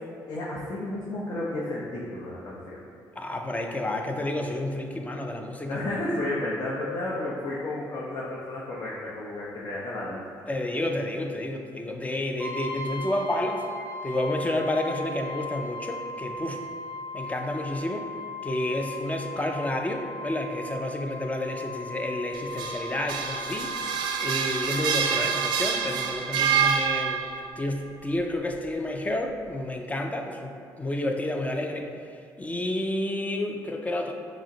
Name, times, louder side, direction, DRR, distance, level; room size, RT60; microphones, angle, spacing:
voice 1, 0.3-2.8 5.7-10.2, left 1 dB, 55° left, -6 dB, 0.8 m, -32 dB
voice 2, 3.2-5.8 10.5-13.6 14.0-16.6 17.1-18.1 18.4-27.2 27.6-31.9 32.4-34.1, left 1 dB, 20° left, 3 dB, 0.5 m, -30 dB
Brass instrument, 12.4-26.0, left 1 dB, 15° right, 1.1 m, -38 dB
sound 1, 22.3-27.5, right 7 dB, 75° right, 0.4 m, -27 dB
6.1 x 2.1 x 3.8 m, 2.3 s
supercardioid pair, 75°, 8 cm